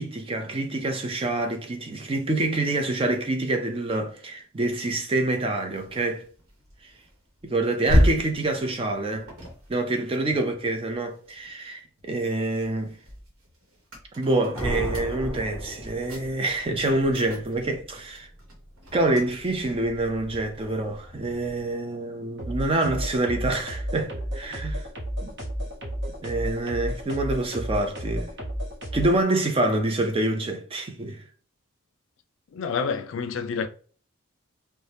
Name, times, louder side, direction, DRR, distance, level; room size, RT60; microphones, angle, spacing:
voice 1, 0.0-6.2 7.4-9.3 9.7-12.9 14.2-18.3 18.9-24.9 25.2-25.3 26.2-28.3 28.9-31.2, right 2 dB, 25° right, 0.4 m, -26 dB
sound 1, 5.0-11.5 12.0-21.8, equal, 80° right, 1.0 m, -33 dB
sound 2, 14.5-16.5, equal, 10° right, 0.8 m, -33 dB
sound 3, 22.4-29.2, equal, 55° right, 0.9 m, -32 dB
voice 2, 32.5-33.7, left 5 dB, 65° left, 0.3 m, -28 dB
2.7 x 2.1 x 3.3 m
head